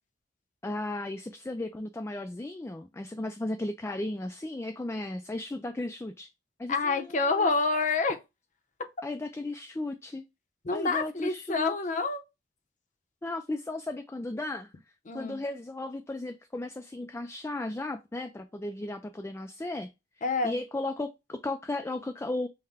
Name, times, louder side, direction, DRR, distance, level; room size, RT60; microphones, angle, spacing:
voice 1, 0.6-6.3 6.6-7.5 9.0-10.2 10.7-11.7 13.2-14.7 15.1-19.9 20.4-22.5, left 2 dB, 15° left, 0.3 m, -35 dB
voice 2, 6.7-8.2 10.6-12.2 15.1-15.4 20.2-20.6, left 3 dB, 45° left, 0.6 m, -27 dB
5.6 x 2.1 x 3.4 m
head